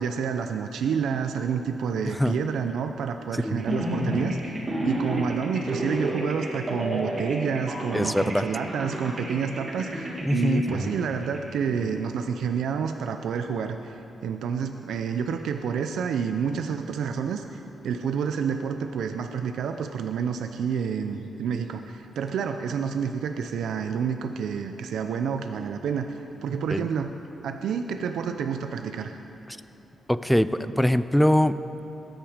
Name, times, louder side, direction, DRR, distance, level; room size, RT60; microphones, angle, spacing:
voice 1, 0.0-4.6 4.8-27.1 27.4-29.2, right 6 dB, 85° right, 6 dB, 0.6 m, -29 dB
sound 1, 3.6-11.9, right 1 dB, 25° right, 2.2 m, -31 dB
voice 2, 7.9-8.4 10.2-10.7 26.7-26.9 30.1-31.6, left 1 dB, ahead, 13 dB, 0.4 m, -22 dB
20.5 x 9.0 x 5.0 m, 2.9 s
wide cardioid pair, 155°, 0 cm